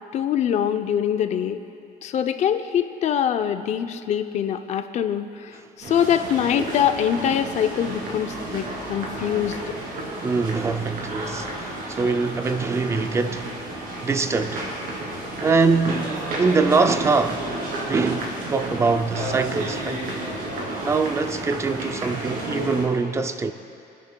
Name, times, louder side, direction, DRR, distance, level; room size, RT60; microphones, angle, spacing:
voice 1, 0.1-1.6 2.0-9.8, left 9 dB, 40° left, 0.5 m, -24 dB
sound 1, 5.8-22.8, right 1 dB, 55° right, 2.8 m, -32 dB
sound 2, 5.8-10.9, right 3 dB, 70° right, 1.9 m, -43 dB
voice 2, 10.2-14.8 15.4-17.5 17.9-20.1 20.8-23.5, right 4 dB, 15° right, 0.4 m, -23 dB
28.5 x 10.0 x 2.2 m
cardioid pair, 165°, 17 cm